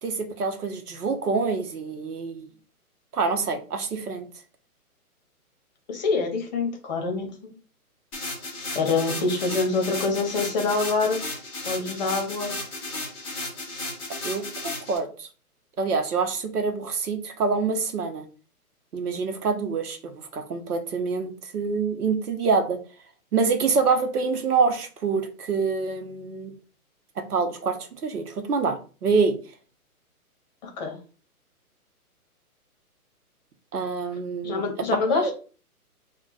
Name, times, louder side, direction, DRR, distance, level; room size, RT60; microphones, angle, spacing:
voice 1, 0.0-2.5 3.1-4.3 14.2-15.3 15.8-18.2 18.9-22.8 23.3-26.5 27.2-29.4 33.7-34.6 35.1-35.3, right 4 dB, 85° right, 7 dB, 0.8 m, -26 dB
voice 2, 5.9-7.6 8.7-11.3 11.7-12.5 30.6-31.0 34.4-35.3, left 3 dB, 30° left, 3 dB, 0.8 m, -26 dB
sound 1, 8.1-15.0, left 2 dB, 10° left, 0.5 m, -34 dB
2.3 x 2.2 x 3.8 m, 0.37 s
hypercardioid pair, 140°, 45 cm